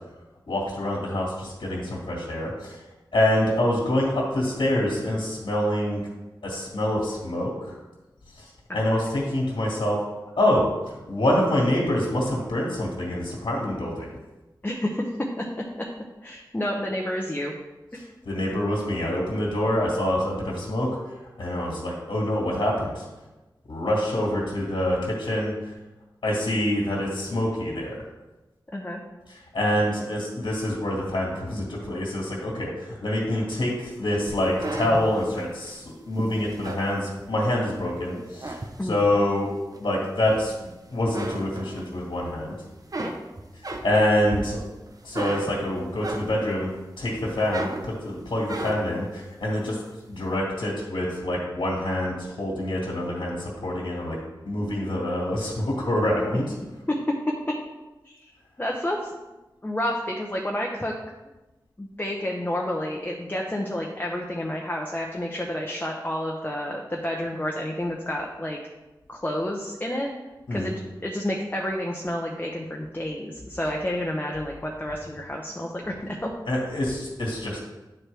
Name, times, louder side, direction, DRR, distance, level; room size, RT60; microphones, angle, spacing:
voice 1, 0.5-2.8 3.1-6.0 6.4-7.7 8.7-10.0 10.4-14.1 18.3-20.9 21.4-23.0 23.7-25.5 26.2-28.0 29.3-38.5 38.8-39.5 39.8-40.5 40.9-42.5 43.8-44.6 45.0-46.7 47.0-49.8 50.1-54.2 54.4-56.4 70.5-70.7 76.5-77.6, left 1 dB, 85° left, -4 dB, 1.9 m, -26 dB
voice 2, 14.6-15.0 15.4-15.5 16.2-17.5 28.7-29.0 38.8-39.0 43.0-43.1 56.9-57.0 58.0-58.2 58.6-59.1 59.6-60.9 61.8-68.6 69.1-70.1 70.5-70.7 71.0-76.3, left 1 dB, 20° left, -1 dB, 0.9 m, -30 dB
sound 1, 34.3-37.7 38.1-39.2 39.7-40.7 41.0-42.3 42.6-46.6 47.1-49.0, right 2 dB, 50° right, 0.9 m, -35 dB
9.6 x 4.5 x 3.4 m, 1.1 s
cardioid pair, 45°, 8 cm